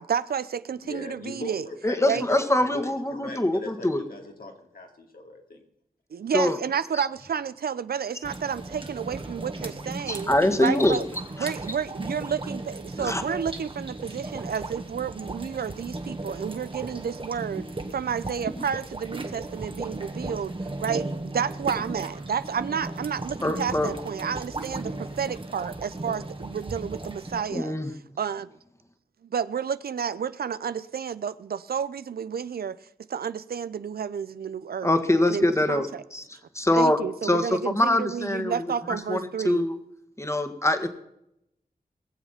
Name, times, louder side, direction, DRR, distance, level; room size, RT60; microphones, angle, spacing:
voice 1, 0.0-1.7 2.1-2.3 6.1-11.0 11.4-17.7 17.9-20.5 20.8-27.8 28.2-28.5 29.3-32.8 33.1-34.9 35.3-36.0 36.8-39.7, right 7 dB, 85° right, 0.5 m, -31 dB
voice 2, 0.8-2.4 2.7-5.6, left 2 dB, 75° left, 2.5 m, -39 dB
voice 3, 1.8-4.0 6.3-6.6 10.1-11.0 11.4-11.5 13.0-13.2 23.4-23.9 27.5-27.9 34.8-36.2 36.5-39.7 40.2-40.9, left 1 dB, 20° left, 1.7 m, -24 dB
sound 1, 8.2-27.4, right 2 dB, 35° right, 1.5 m, -36 dB
20.0 x 7.3 x 5.8 m
cardioid pair, 50°, 15 cm